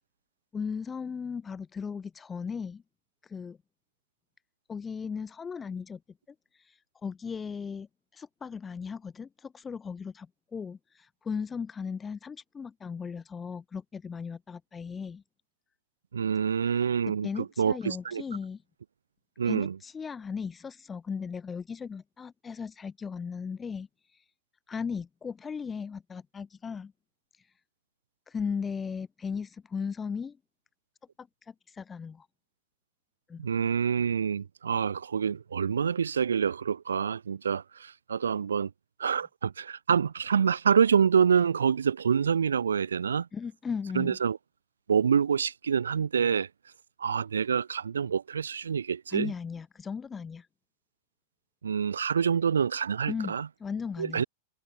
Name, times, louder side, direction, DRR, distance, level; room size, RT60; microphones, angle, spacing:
voice 1, 0.5-2.8 3.2-3.6 4.7-6.0 6.5-7.9 8.1-15.2 17.2-18.6 19.4-24.2 24.7-26.9 27.3-27.5 28.3-30.4 31.2-32.3 33.3-33.5 43.3-44.2 49.1-50.5 53.1-54.2, left 6 dB, 15° left, 1.8 m, -37 dB
voice 2, 16.1-18.2 19.4-19.8 33.4-38.7 39.0-43.3 43.9-44.4 44.9-46.5 47.0-49.3 51.6-53.5 54.0-54.2, right 7 dB, 70° right, 0.4 m, -26 dB
figure-of-eight pair, 90°, 0 cm